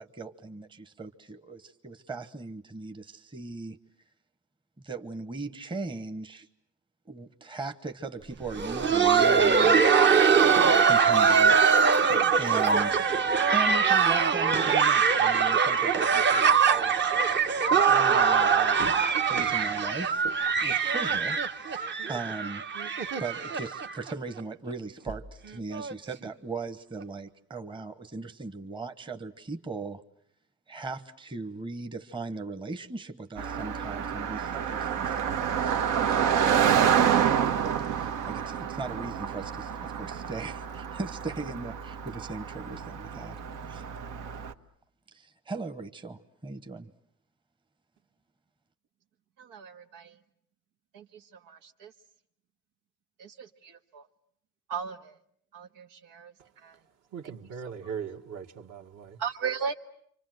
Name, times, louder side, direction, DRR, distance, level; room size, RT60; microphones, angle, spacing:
voice 1, 0.0-3.8 4.8-6.5 7.1-10.3 10.8-11.8 12.4-13.1 13.5-17.3 17.7-18.8 19.3-20.2 20.6-21.4 21.6-22.6 23.2-30.0 30.7-36.4 37.8-43.4 43.6-43.8 45.1-46.9, right 3 dB, 15° right, 1.1 m, -38 dB
Laughter, 8.4-24.1 24.4-24.5 25.1-25.2 25.7-25.9 27.0-27.1, right 6 dB, 35° right, 1.1 m, -23 dB
Car passing by, 33.4-44.5, right 8 dB, 70° right, 1.4 m, -28 dB
voice 2, 49.4-50.1 50.9-51.0 51.5-51.9 53.2-53.5 53.9-54.0 54.7-55.1 55.5-56.3 56.6-56.7 59.2-59.7, right 6 dB, 85° right, 1.8 m, -36 dB
voice 3, 57.1-59.2, right 7 dB, 55° right, 1.9 m, -39 dB
28.5 x 25.5 x 7.8 m
cardioid pair, 140°, 31 cm